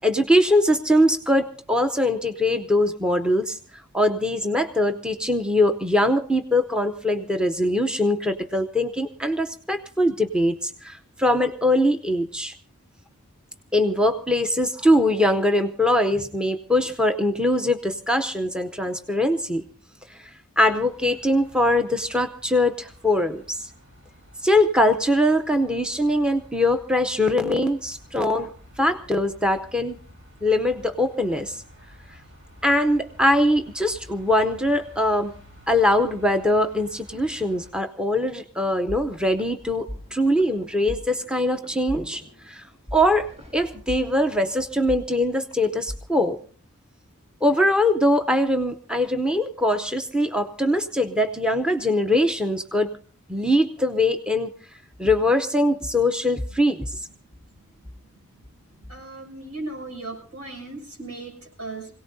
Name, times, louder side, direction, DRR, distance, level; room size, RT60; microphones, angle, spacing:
voice 1, 0.0-3.6 3.9-12.5 13.7-19.7 20.1-20.3 20.6-23.6 24.4-28.5 28.8-30.0 30.4-31.6 32.6-35.3 35.7-42.6 42.9-46.4 47.4-52.9 53.3-54.5 55.0-57.0, left 1 dB, 5° right, 7 dB, 0.7 m, -22 dB
sound 1, 20.6-37.7, left 1 dB, 55° right, 7.1 m, -50 dB
sound 2, 38.9-46.4, equal, 25° right, 3.7 m, -40 dB
voice 2, 57.6-57.9 58.3-58.4 58.7-61.9, right 2 dB, 75° right, 1 dB, 6.9 m, -37 dB
25.5 x 17.5 x 2.7 m, 0.42 s
head